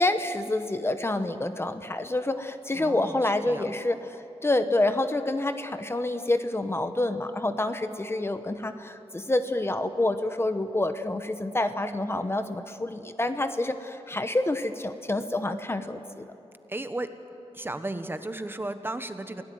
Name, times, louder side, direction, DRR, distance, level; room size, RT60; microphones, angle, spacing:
voice 1, 0.0-4.0 4.4-16.2, left 2 dB, 20° left, 9 dB, 1.0 m, -27 dB
voice 2, 2.7-3.7 16.7-17.1 17.5-19.4, right 2 dB, 20° right, 9 dB, 1.2 m, -34 dB
28.5 x 17.5 x 9.4 m, 2.9 s
wide cardioid pair, 120°, 11 cm